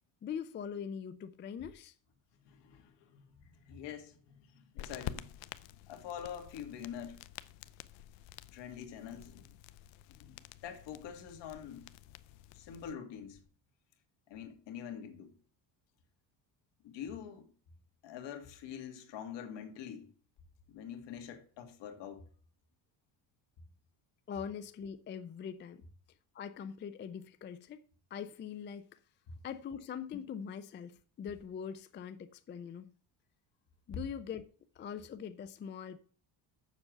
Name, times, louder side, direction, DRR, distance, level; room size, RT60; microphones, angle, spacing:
voice 1, 0.2-1.9 24.3-25.8 26.3-27.8 28.1-28.9 29.4-32.9 33.9-34.5 34.8-36.0, left 7 dB, 25° left, 0.4 m, -42 dB
voice 2, 2.4-5.3 5.9-7.2 8.5-9.6 10.2-11.8 12.5-13.4 14.3-15.3 16.8-17.5 18.0-20.1 20.7-22.2, left 8 dB, 65° left, 2.2 m, -45 dB
sound 1, 4.8-12.9, left 12 dB, 85° left, 0.7 m, -49 dB
7.3 x 6.6 x 7.8 m
cardioid pair, 145°, 45 cm